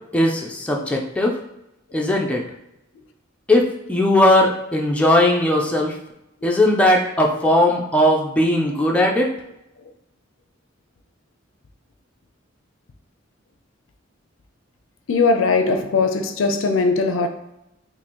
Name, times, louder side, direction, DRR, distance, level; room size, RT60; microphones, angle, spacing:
voice 1, 0.1-1.3 1.9-2.4 3.5-5.9 6.4-9.3, left 1 dB, 5° left, 0.4 m, -18 dB
voice 2, 15.1-17.3, left 4 dB, 70° left, 0.4 m, -19 dB
2.8 x 2.6 x 4.3 m
head